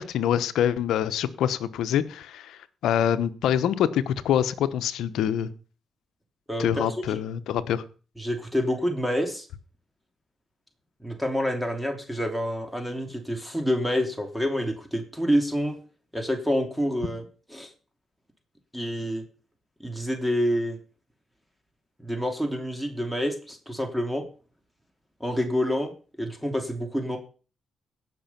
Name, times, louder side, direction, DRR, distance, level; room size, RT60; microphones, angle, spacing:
voice 1, 0.0-5.5 6.6-7.8, left 10 dB, 80° left, 14 dB, 0.9 m, -25 dB
voice 2, 6.5-7.2 8.2-9.5 11.0-15.8 16.1-17.2 17.5-17.7 18.7-19.2 19.8-20.8 22.0-24.2 25.2-25.9 26.2-27.2, equal, ahead, 5 dB, 2.9 m, -27 dB
16.5 x 6.3 x 5.8 m, 0.38 s
supercardioid pair, 55°, 0 cm